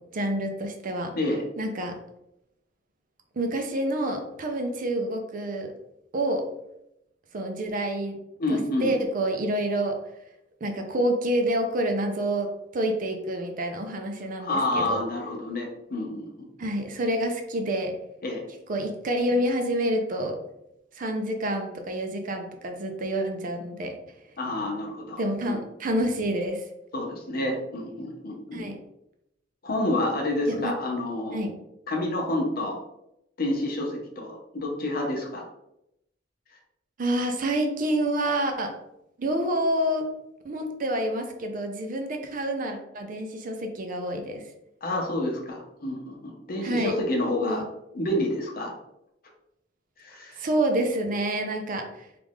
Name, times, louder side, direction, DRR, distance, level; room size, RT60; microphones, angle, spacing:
voice 1, 0.1-1.1 1.6-2.0 3.4-5.7 6.1-6.5 7.3-8.2 8.5-10.0 10.6-15.0 16.6-17.9 18.7-20.4 21.0-23.9 25.2-26.6 28.5-28.8 30.5-30.7 31.3-31.5 37.0-38.7 39.2-40.1 40.4-44.4 46.6-46.9 47.4-47.6 50.4-52.1, right 1 dB, 45° right, 4 dB, 0.5 m, -28 dB
voice 2, 8.4-8.9 14.4-16.5 18.2-18.4 24.4-25.6 26.9-28.6 29.6-31.5 31.9-32.8 33.4-35.4 44.8-47.6 47.9-48.7 50.0-50.4, left 1 dB, 55° left, 1 dB, 0.7 m, -29 dB
3.1 x 2.5 x 3.5 m, 0.83 s
head